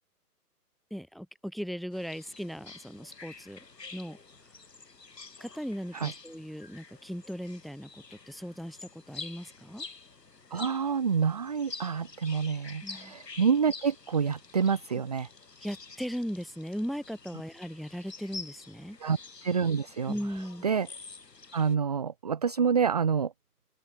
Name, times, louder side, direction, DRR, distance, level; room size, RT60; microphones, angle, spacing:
voice 1, 0.9-3.6 3.9-4.2 5.4-9.9 12.8-13.1 15.6-19.0 20.1-20.7, equal, ahead, 2.4 m, -38 dB
sound 1, 1.9-21.7, left 4 dB, 90° left, 6.9 m, -48 dB
voice 2, 10.5-15.3 19.0-19.2 19.4-20.1 20.6-20.9 21.5-23.3, right 6 dB, 30° right, 0.3 m, -27 dB
hypercardioid pair, 130°, 47 cm